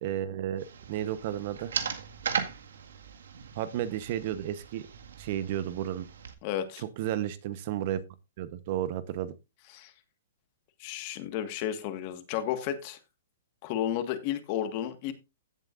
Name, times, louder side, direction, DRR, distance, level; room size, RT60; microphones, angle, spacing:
voice 1, 0.0-1.7 3.6-4.8 5.2-6.1 6.8-8.0 8.4-9.3, right 11 dB, 40° right, 14 dB, 1.0 m, -32 dB
sound 1, 0.6-6.3, right 7 dB, 85° right, 1.8 m, -38 dB
voice 2, 6.4-6.8 9.7-9.9 10.8-13.0 13.6-15.1, left 10 dB, 35° left, 9 dB, 1.6 m, -32 dB
16.0 x 7.6 x 2.5 m, 0.26 s
hypercardioid pair, 160°, 0 cm